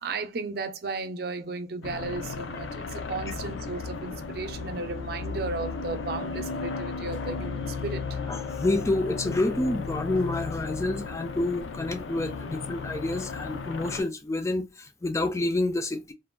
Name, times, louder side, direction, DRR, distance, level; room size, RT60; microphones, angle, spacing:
voice 1, 0.0-8.2, right 3 dB, 55° right, 0.5 m, -35 dB
sound 1, 1.8-14.0, left 4 dB, 80° left, 0.5 m, -35 dB
voice 2, 8.3-16.1, left 2 dB, 15° left, 0.3 m, -28 dB
3.3 x 2.2 x 2.2 m
head